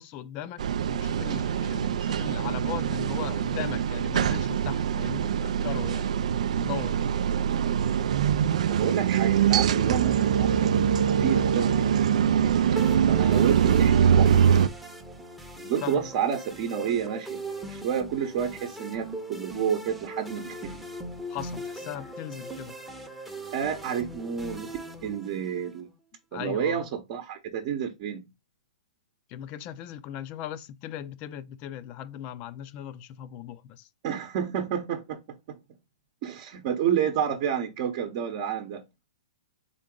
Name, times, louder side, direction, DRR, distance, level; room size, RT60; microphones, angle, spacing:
voice 1, 0.0-6.2 6.6-7.0 15.8-16.0 21.3-22.8 26.3-26.9 29.3-33.9, left 11 dB, 35° left, 0.5 m, -38 dB
sound 1, 0.6-14.7, right 8 dB, 70° right, 0.4 m, -23 dB
voice 2, 8.7-12.6 13.1-14.3 15.6-20.8 23.5-24.7 25.0-25.9 26.3-28.2 34.0-35.6 36.2-38.8, right 8 dB, 45° right, 0.8 m, -30 dB
sound 2, 12.8-25.8, right 1 dB, 5° right, 0.8 m, -40 dB
3.8 x 3.7 x 3.7 m
hypercardioid pair, 130°, 4 cm